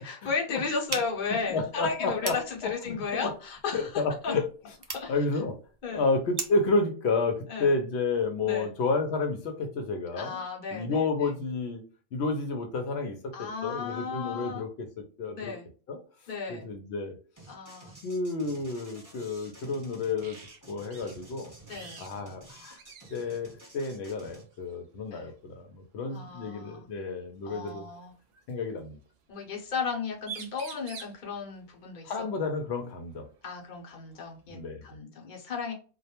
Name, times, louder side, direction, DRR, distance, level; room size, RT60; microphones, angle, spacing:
voice 1, 0.0-4.3 4.9-5.4 5.8-6.0 7.5-7.7 8.4-8.7 10.2-11.1 13.3-14.7 15.2-15.6 16.3-16.6 17.5-18.0 21.7-22.0 25.1-25.3 26.1-26.9 27.4-28.1 29.3-32.1 33.4-35.7, left 5 dB, 50° left, 0 dB, 0.8 m, -34 dB
sound 1, 0.9-6.7, right 3 dB, 40° right, 0.3 m, -41 dB
voice 2, 1.5-2.4 2.6-2.7 3.1-3.3 3.7-4.4 5.1-5.5 5.9-10.4 10.7-11.8 12.1-14.9 15.2-15.5 15.9-16.0 16.5-17.1 18.0-20.4 20.7-21.5 22.0-22.8 23.1-27.9 28.5-29.0 32.0-33.3 34.5-34.8, left 3 dB, 80° left, 4 dB, 0.8 m, -30 dB
sound 2, 17.4-24.4, right 2 dB, 20° right, 0.9 m, -51 dB
sound 3, 20.2-20.6 20.9-21.2 21.7-22.1 22.4-22.5 22.8-23.4 24.5-24.8 26.5-26.6 27.7-28.5 29.9-30.0 30.2-31.2 33.2-33.3 33.7-34.7, right 6 dB, 70° right, 0.7 m, -46 dB
2.2 x 2.1 x 2.8 m, 0.38 s
omnidirectional pair, 1.1 m